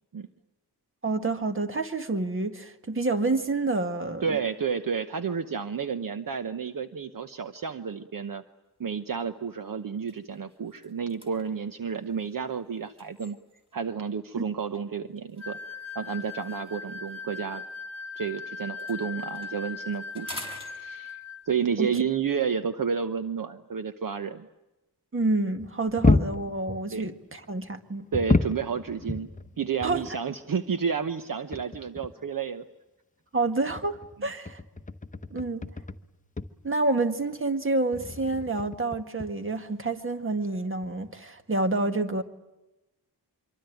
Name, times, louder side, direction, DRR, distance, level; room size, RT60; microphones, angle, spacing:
voice 1, 1.0-4.4 14.3-14.4 21.8-22.0 25.1-28.1 29.8-30.0 33.3-34.6 35.3-35.7 36.6-42.2, right 2 dB, 30° right, 8 dB, 1.8 m, -28 dB
voice 2, 4.2-8.4 8.8-13.4 13.7-15.6 15.9-17.6 18.2-21.2 21.5-24.5 26.9-27.1 28.1-29.3 29.6-32.6, right 6 dB, 55° right, 10 dB, 1.0 m, -31 dB
sound 1, 8.8-9.0 9.5-9.6 9.9-13.9 14.7-18.3 18.6-21.4, equal, 15° right, 5.1 m, -48 dB
sound 2, 15.4-21.5, left 4 dB, 75° right, 4.6 m, -39 dB
sound 3, 25.6-27.1 28.1-30.2 30.5-30.6 31.1-31.2 31.5-32.1 33.5-36.1 36.4-36.6 37.9-39.3 40.5-40.6 40.8-41.1, left 3 dB, 20° left, 1.0 m, -29 dB
25.5 x 24.0 x 9.3 m, 1.0 s
wide cardioid pair, 165°, 40 cm